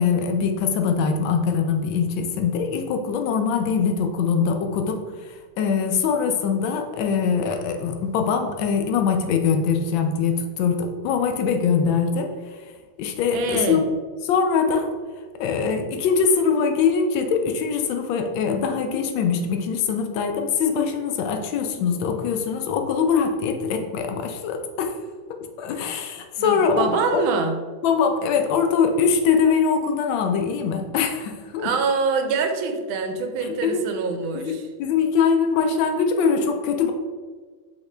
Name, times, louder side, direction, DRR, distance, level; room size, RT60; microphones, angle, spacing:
voice 1, 0.0-12.3 13.0-13.9 14.2-14.9 15.4-25.0 25.6-27.2 27.8-31.7 33.4-33.8 34.3-36.9, left 6 dB, 80° left, 5 dB, 1.3 m, -22 dB
voice 2, 13.3-13.8 26.4-27.6 31.6-34.6, right 4 dB, 80° right, 6 dB, 1.4 m, -25 dB
5.5 x 2.9 x 3.2 m, 1.5 s
omnidirectional pair, 2.2 m